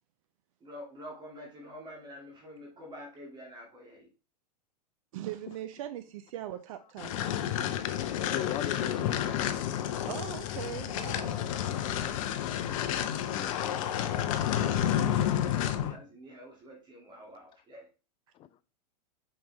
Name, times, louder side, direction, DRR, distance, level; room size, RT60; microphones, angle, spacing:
voice 1, 0.6-4.1 15.6-17.9, equal, 20° right, 2.1 m, -48 dB
voice 2, 5.1-7.1 10.1-11.4, right 12 dB, 55° right, 0.6 m, -40 dB
sound 1, 7.0-16.0, left 10 dB, 55° left, 0.8 m, -30 dB
voice 3, 8.3-9.6 13.3-14.4 18.3-18.5, left 12 dB, 25° left, 0.5 m, -39 dB
5.8 x 5.3 x 3.2 m
hypercardioid pair, 100°, 21 cm